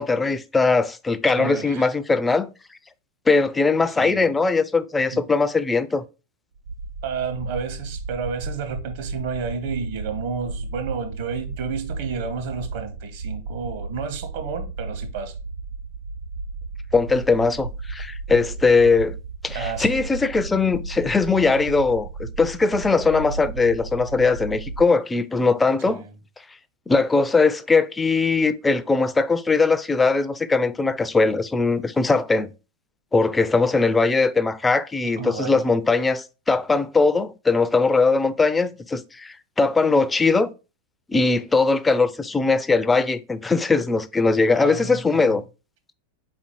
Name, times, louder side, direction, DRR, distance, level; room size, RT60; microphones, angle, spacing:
voice 1, 0.0-2.5 3.3-6.0 16.9-19.1 19.4-26.0 26.9-32.5 33.1-40.5 41.1-45.4, left 4 dB, 10° left, 0.3 m, -20 dB
voice 2, 1.4-1.9 4.0-4.3 5.1-5.3 7.0-15.3 19.5-20.1 25.9-26.1 35.2-35.7 44.6-45.4, right 6 dB, 50° right, 0.8 m, -31 dB
sound 1, 6.6-24.8, right 3 dB, 65° right, 0.3 m, -34 dB
4.1 x 4.0 x 2.9 m
figure-of-eight pair, 90°, 0 cm